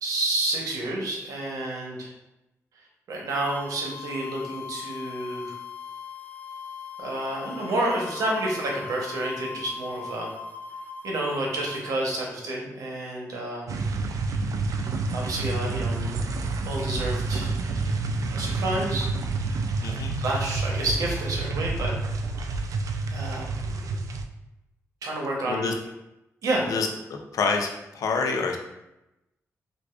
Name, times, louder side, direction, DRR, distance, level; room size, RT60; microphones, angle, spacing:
voice 1, 0.0-2.1 2.7-5.6 7.0-10.3 11.0-13.8 15.1-16.2 16.6-17.5 18.3-19.6 20.2-21.9 23.1-24.0 25.0-25.7 26.4-26.7, right 1 dB, 90° right, -2 dB, 0.9 m, -30 dB
sound 1, 3.3-12.0, left 6 dB, 30° left, 0.4 m, -39 dB
sound 2, 13.7-24.3, right 3 dB, 70° right, 0.3 m, -29 dB
voice 2, 19.8-20.2 25.5-25.7 26.7-28.6, left 4 dB, 80° left, 3 dB, 0.5 m, -27 dB
4.8 x 2.5 x 2.3 m, 0.92 s
cardioid pair, 80°, 6 cm